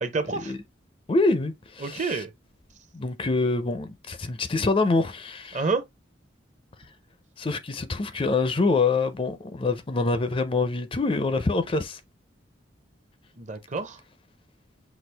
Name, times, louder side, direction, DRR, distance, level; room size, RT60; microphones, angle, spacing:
voice 1, 0.0-0.6 1.8-2.3 5.5-5.8 13.4-14.0, right 4 dB, 40° right, 0.7 m, -28 dB
voice 2, 1.1-2.2 2.9-5.6 7.4-12.0, left 3 dB, 30° left, 0.4 m, -25 dB
6.0 x 2.4 x 3.3 m
head